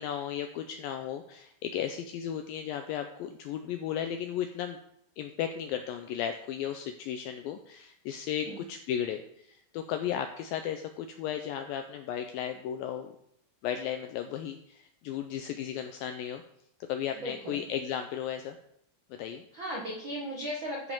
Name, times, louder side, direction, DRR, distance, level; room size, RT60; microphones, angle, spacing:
voice 1, 0.0-4.8 5.2-13.1 13.6-16.4 16.9-18.6 19.1-19.4, left 9 dB, 85° left, 7 dB, 2.0 m, -35 dB
voice 2, 17.2-17.7 19.5-20.9, equal, 90° right, -2 dB, 1.0 m, -36 dB
13.0 x 5.2 x 5.4 m, 0.74 s
omnidirectional pair, 4.7 m